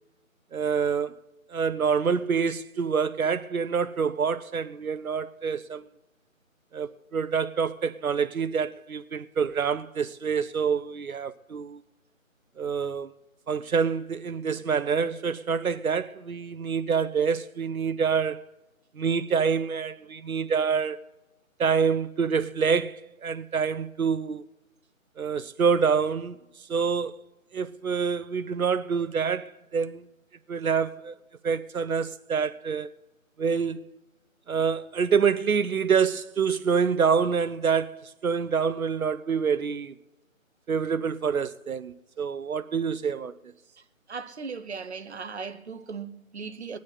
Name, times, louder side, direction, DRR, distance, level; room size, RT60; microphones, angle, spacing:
voice 1, 0.5-1.2 1.5-5.9 6.7-11.8 12.6-13.1 13.5-18.4 19.0-21.0 21.6-24.4 25.2-27.2 27.5-30.1 30.5-31.1 31.4-32.9 33.4-33.9 34.5-39.9 40.7-43.3, right 6 dB, 85° right, 0.8 m, -26 dB
voice 2, 44.1-46.8, right 5 dB, 55° right, 0.9 m, -37 dB
20.0 x 9.6 x 4.3 m
figure-of-eight pair, 160°, 41 cm